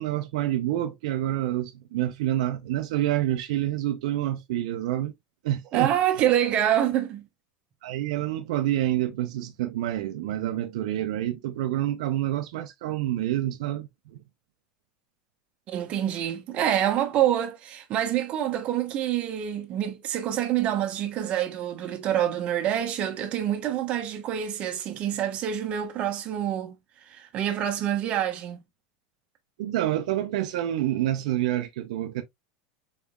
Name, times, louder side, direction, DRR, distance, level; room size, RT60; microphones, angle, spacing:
voice 1, 0.0-5.1 5.4-5.9 7.8-13.9 29.6-32.2, right 13 dB, 75° right, 0.5 m, -27 dB
voice 2, 5.7-7.3 15.7-26.8 27.0-28.6, right 11 dB, 35° right, 0.9 m, -26 dB
4.0 x 3.5 x 2.2 m
supercardioid pair, 150°, 4 cm